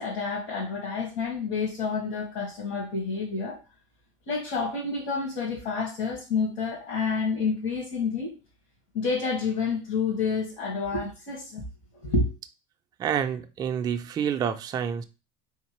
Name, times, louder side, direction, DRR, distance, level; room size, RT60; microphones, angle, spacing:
voice 1, 0.0-3.6 4.3-8.3 8.9-11.6 12.0-12.3, left 4 dB, 80° left, 1.8 m, -29 dB
voice 2, 13.0-15.0, right 8 dB, 25° right, 0.3 m, -28 dB
3.8 x 3.5 x 3.0 m
supercardioid pair, 130°, 17 cm